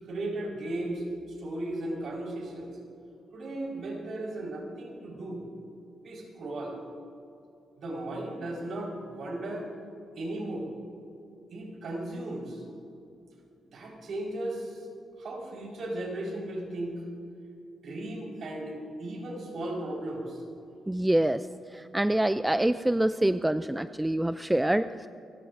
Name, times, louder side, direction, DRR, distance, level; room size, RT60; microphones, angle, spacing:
voice 1, 0.1-2.8 3.3-5.5 6.0-6.8 7.8-9.7 10.1-10.7 11.5-12.6 13.7-14.9 15.2-16.9 17.8-20.4, right 1 dB, 65° right, -1 dB, 4.7 m, -36 dB
voice 2, 20.9-21.5 21.7-25.1, right 1 dB, 10° right, 12 dB, 0.4 m, -26 dB
28.5 x 15.0 x 2.6 m, 2.5 s
cardioid pair, 90°, 0 cm